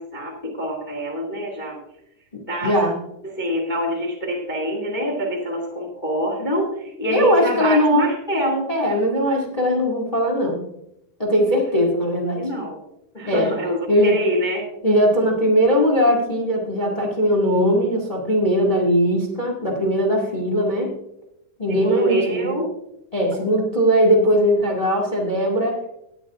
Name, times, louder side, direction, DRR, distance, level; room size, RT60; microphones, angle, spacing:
voice 1, 0.0-1.8 2.5-2.7 3.2-8.7 12.4-12.8 13.1-14.6 21.7-22.7, equal, 20° left, -1 dB, 1.3 m, -25 dB
voice 2, 2.6-2.9 7.1-8.0 8.7-10.6 11.2-12.4 13.2-13.5 13.9-14.1 14.8-20.9 21.6-22.5 23.1-25.8, equal, 45° left, -2 dB, 0.4 m, -19 dB
19.5 x 9.3 x 2.5 m, 0.80 s
omnidirectional pair, 4.9 m